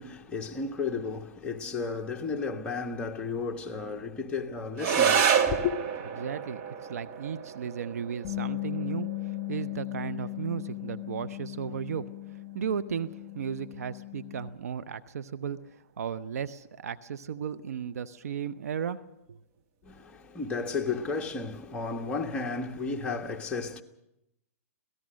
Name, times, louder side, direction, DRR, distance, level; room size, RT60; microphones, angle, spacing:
voice 1, 0.0-5.7 19.8-23.8, left 4 dB, 15° left, 1.5 m, -33 dB
sound 1, 4.8-13.8, right 7 dB, 40° right, 2.0 m, -31 dB
voice 2, 6.2-19.0 19.3-19.4, right 7 dB, 75° right, 0.8 m, -35 dB
Bass guitar, 8.2-14.5, left 23 dB, 35° left, 2.8 m, -37 dB
26.0 x 18.0 x 6.4 m
hypercardioid pair, 130°, 8 cm